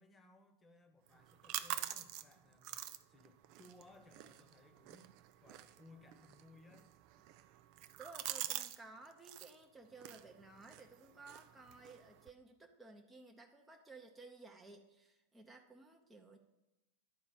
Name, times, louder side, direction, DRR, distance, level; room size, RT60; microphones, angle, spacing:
voice 1, 0.0-5.1 5.4-6.9, left 2 dB, 15° left, 7 dB, 1.2 m, -63 dB
sound 1, 1.1-8.8 9.1-9.5 10.0-12.3, right 13 dB, 45° right, 0.5 m, -47 dB
voice 2, 8.0-16.4, right 3 dB, 5° right, 1 dB, 0.8 m, -56 dB
11.0 x 5.0 x 7.3 m, 0.97 s
figure-of-eight pair, 90°, 0 cm